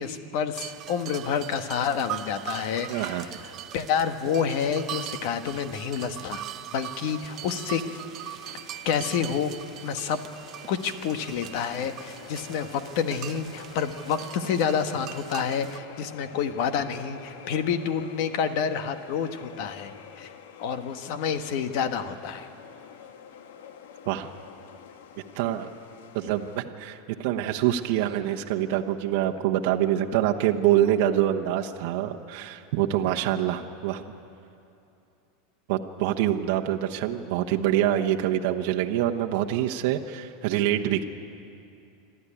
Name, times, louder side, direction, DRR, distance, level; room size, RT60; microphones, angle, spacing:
voice 1, 0.0-3.3 3.7-6.4 6.7-7.8 8.8-9.5 9.8-10.2 10.7-20.3 20.6-22.5, left 7 dB, 55° left, 9 dB, 1.3 m, -28 dB
sound 1, 0.5-15.8, right 12 dB, 35° right, 0.6 m, -41 dB
voice 2, 2.9-3.3 24.1-24.3 25.3-25.7 26.1-34.0 35.7-41.0, right 12 dB, 60° right, 3 dB, 1.0 m, -25 dB
sound 2, 7.0-26.6, left 8 dB, 85° left, 1.4 m, -47 dB
27.0 x 12.5 x 10.0 m, 2.8 s
supercardioid pair, 150°, 0 cm